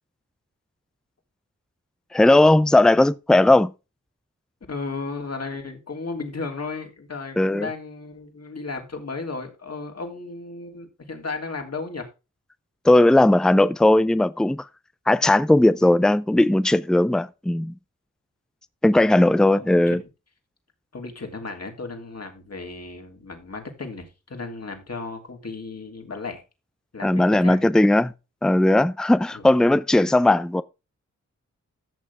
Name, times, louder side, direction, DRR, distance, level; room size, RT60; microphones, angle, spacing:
voice 1, 2.1-3.7 7.4-7.7 12.8-14.7 15.1-17.7 18.8-20.0 27.0-28.1 28.4-30.6, left 1 dB, ahead, 0.5 m, -17 dB
voice 2, 4.7-12.1 19.1-20.0 20.9-26.4 26.9-27.7 29.3-29.4, left 3 dB, 55° left, 3.1 m, -35 dB
14.0 x 6.7 x 3.5 m
cardioid pair, 60°, 30 cm